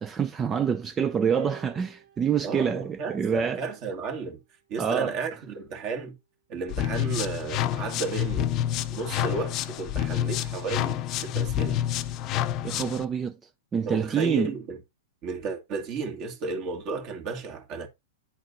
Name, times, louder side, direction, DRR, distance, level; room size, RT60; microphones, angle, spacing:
voice 1, 0.0-3.6 4.8-5.1 12.6-13.3 13.7-14.5, right 7 dB, 20° right, 0.4 m, -26 dB
sound 1, 1.4-3.9 4.9-5.0, right 8 dB, 80° right, 2.3 m, -53 dB
voice 2, 2.4-4.4 4.7-6.1 6.5-8.5 8.9-11.8 13.9-14.8 15.2-17.9, right 4 dB, 40° right, 2.1 m, -33 dB
sound 2, 6.7-13.0, left 11 dB, 35° left, 0.6 m, -28 dB
9.5 x 4.1 x 3.9 m
hypercardioid pair, 135°, 0 cm